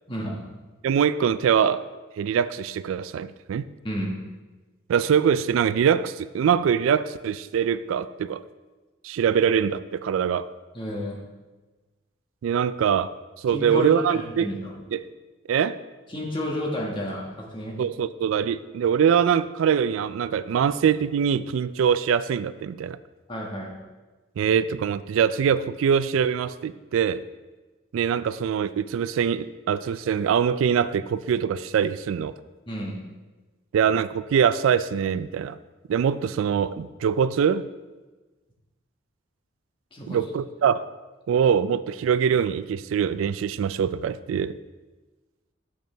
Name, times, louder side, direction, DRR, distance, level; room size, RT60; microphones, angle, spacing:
voice 1, 0.1-0.4 3.8-4.1 10.7-11.2 13.5-14.7 16.1-17.8 23.3-23.7 32.7-33.0 39.9-40.2, equal, 25° left, -2 dB, 1.4 m, -31 dB
voice 2, 0.8-1.9 2.2-3.7 4.9-8.4 9.0-10.5 12.4-14.5 14.9-15.0 15.5-15.8 17.8-23.0 24.4-27.2 27.9-32.3 33.7-35.6 35.9-37.7 40.1-40.9 41.3-44.5, right 7 dB, 80° right, 15 dB, 0.3 m, -23 dB
8.0 x 6.6 x 3.4 m, 1.2 s
head